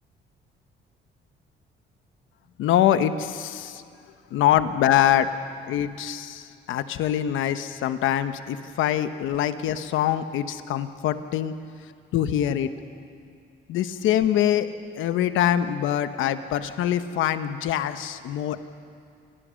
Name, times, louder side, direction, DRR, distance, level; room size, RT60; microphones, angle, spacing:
voice 1, 2.6-3.8 4.3-5.3 5.7-11.5 12.1-12.7 13.7-14.7 15.0-18.7, left 11 dB, 90° left, 10 dB, 1.1 m, -24 dB
27.5 x 19.5 x 6.4 m, 2.3 s
cardioid pair, 90°, 20 cm